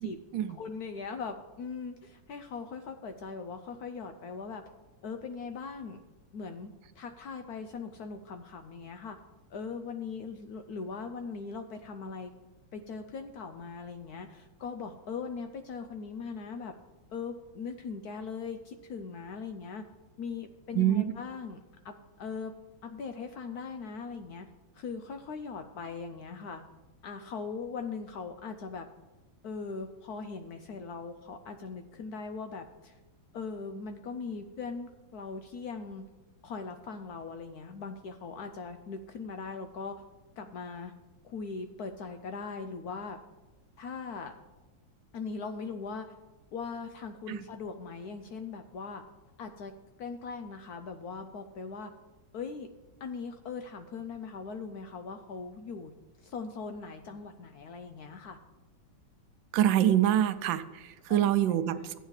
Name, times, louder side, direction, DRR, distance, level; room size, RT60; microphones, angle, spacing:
voice 1, 0.5-4.6 5.0-6.0 6.3-9.2 9.5-12.3 12.7-16.7 17.1-19.8 20.2-21.6 21.8-22.5 22.8-24.5 24.7-26.6 27.0-28.9 29.4-33.0 33.3-36.0 36.4-40.0 40.4-40.9 41.2-43.2 43.8-44.3 45.1-46.1 46.5-49.0 49.4-49.7 50.0-51.9 52.3-52.7 53.0-55.9 56.2-58.4 61.1-61.9, left 5 dB, 70° left, 7 dB, 0.9 m, -40 dB
voice 2, 59.5-61.9, right 11 dB, 80° right, 12 dB, 1.3 m, -25 dB
14.5 x 9.0 x 3.2 m, 1.2 s
omnidirectional pair, 2.1 m